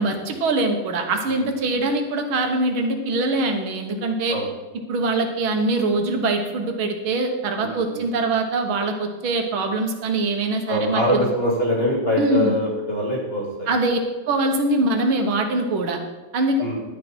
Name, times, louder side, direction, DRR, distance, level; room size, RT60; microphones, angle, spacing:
voice 1, 0.0-4.4 4.9-11.2 12.2-12.6 13.7-14.0 14.3-16.0 16.3-16.6, right 2 dB, 90° right, 4 dB, 2.2 m, -23 dB
voice 2, 7.6-8.1 10.7-13.7 16.6-16.8, left 1 dB, 30° left, -3 dB, 2.8 m, -24 dB
11.5 x 10.0 x 4.5 m, 1.2 s
omnidirectional pair, 2.2 m